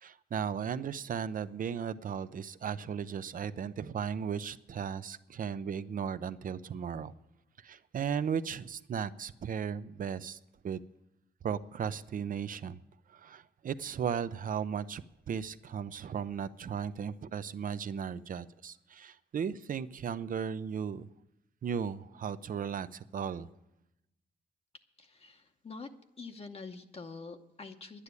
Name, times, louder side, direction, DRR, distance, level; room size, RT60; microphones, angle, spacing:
voice 1, 0.0-7.1 7.6-10.4 10.6-10.8 11.4-12.8 13.1-21.1 21.6-23.5, right 7 dB, 55° right, 14 dB, 0.6 m, -36 dB
voice 2, 25.0-25.9 26.2-28.0, left 4 dB, 35° left, 5 dB, 0.8 m, -46 dB
11.0 x 9.9 x 8.2 m, 0.88 s
cardioid pair, 110°, 17 cm